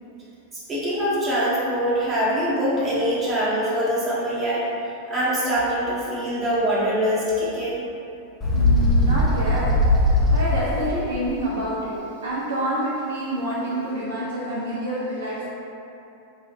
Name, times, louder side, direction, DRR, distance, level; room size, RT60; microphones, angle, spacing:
voice 1, 0.7-4.6 5.1-7.8, equal, 20° right, -9 dB, 1.1 m, -23 dB
Bird, 8.4-10.9, left 1 dB, 15° left, 0.6 m, -19 dB
voice 2, 8.5-9.7 10.3-12.0 12.2-15.5, equal, 65° right, -6 dB, 0.5 m, -27 dB
3.9 x 2.4 x 2.8 m, 2.7 s
figure-of-eight pair, 90°, 0 cm